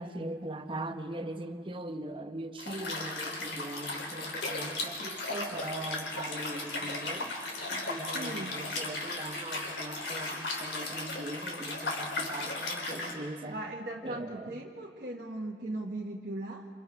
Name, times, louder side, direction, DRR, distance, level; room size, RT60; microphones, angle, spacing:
voice 1, 0.0-7.4 7.7-13.6 14.0-14.6, right 1 dB, 30° right, 0.9 m, -40 dB
Liquid, 2.6-13.1, left 2 dB, 75° left, 3.4 m, -36 dB
voice 2, 8.1-8.6 13.5-16.7, right 2 dB, 50° right, 1.3 m, -38 dB
28.0 x 28.0 x 3.6 m
head